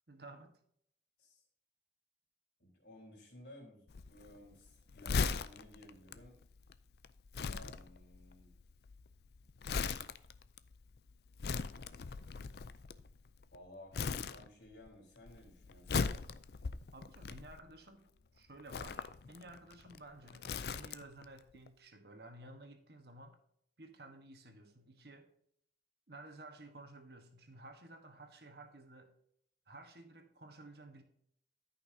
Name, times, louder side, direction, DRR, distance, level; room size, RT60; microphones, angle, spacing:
voice 1, 0.1-0.5 16.9-18.1 18.3-23.4 23.8-25.3 26.1-29.1 29.7-31.0, right 2 dB, 60° right, 1.4 m, -54 dB
voice 2, 2.6-6.4 7.4-8.5 13.5-16.2, left 1 dB, 75° left, 3.7 m, -56 dB
Crumpling crinkling, 3.9-13.5 13.9-14.9 15.2-17.9 18.6-21.2 21.5-21.7, left 5 dB, 60° left, 0.4 m, -39 dB
13.5 x 5.8 x 2.8 m
head